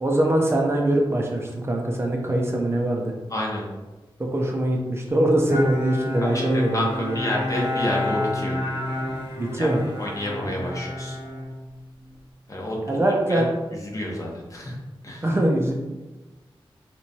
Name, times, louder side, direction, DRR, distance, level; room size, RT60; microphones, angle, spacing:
voice 1, 0.0-3.1 4.2-7.4 9.4-9.9 12.9-13.5 15.2-15.7, right 1 dB, 25° right, 0 dB, 0.5 m, -22 dB
voice 2, 3.3-3.6 6.2-8.6 9.5-9.7 10.0-11.2 12.5-13.0 13.3-13.4 13.8-14.8 15.0-15.3, left 1 dB, 35° left, -2 dB, 0.8 m, -29 dB
Bowed string instrument, 5.5-12.2, left 2 dB, 75° left, 1.2 m, -30 dB
3.4 x 3.1 x 2.7 m, 1.1 s
wide cardioid pair, 115°, 9 cm